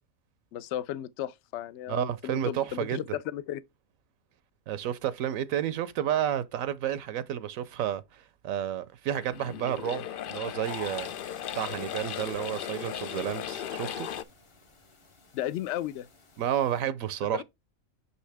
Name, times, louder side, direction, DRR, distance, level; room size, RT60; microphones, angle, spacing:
voice 1, 0.5-3.6 15.3-16.1 17.3-17.4, left 12 dB, 65° left, 0.8 m, -34 dB
voice 2, 1.9-3.0 4.7-11.1 11.5-14.1 16.4-17.4, right 10 dB, 75° right, 1.0 m, -31 dB
sound 1, 9.1-14.2, left 10 dB, 90° left, 0.4 m, -37 dB
sound 2, 10.6-16.8, left 3 dB, 30° left, 0.7 m, -53 dB
6.2 x 5.6 x 3.3 m
omnidirectional pair, 1.5 m